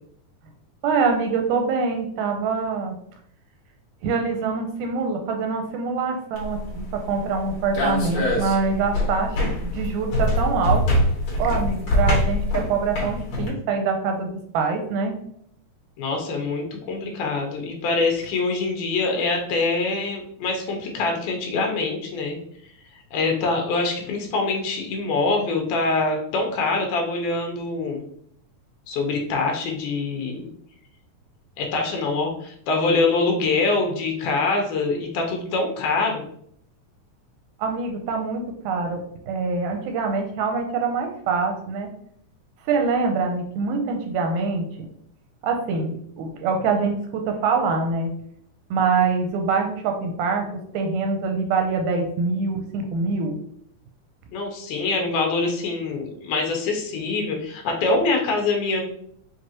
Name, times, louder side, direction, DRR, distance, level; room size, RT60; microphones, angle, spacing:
voice 1, 0.8-3.0 4.0-10.8 11.4-15.2 37.6-41.9 42.7-44.9 45.4-48.1 48.7-50.5 50.7-53.4, right 4 dB, 85° right, 4 dB, 2.0 m, -24 dB
sound 1, 6.3-13.5, left 1 dB, 65° left, 2.6 m, -24 dB
voice 2, 16.0-22.4 23.1-28.0 28.9-30.5 31.6-36.2 54.3-58.8, left 3 dB, 85° left, 2 dB, 2.4 m, -24 dB
6.0 x 2.7 x 2.9 m, 0.67 s
omnidirectional pair, 3.5 m